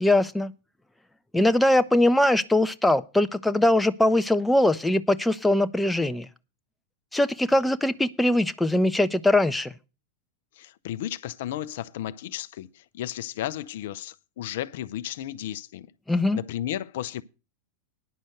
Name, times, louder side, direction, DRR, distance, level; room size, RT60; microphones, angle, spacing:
voice 1, 0.0-0.5 1.3-6.3 7.1-9.7 16.1-16.4, left 1 dB, 5° left, 0.6 m, -21 dB
voice 2, 10.6-15.9 16.3-17.2, left 12 dB, 55° left, 0.6 m, -34 dB
10.0 x 6.3 x 7.8 m
figure-of-eight pair, 90°, 0 cm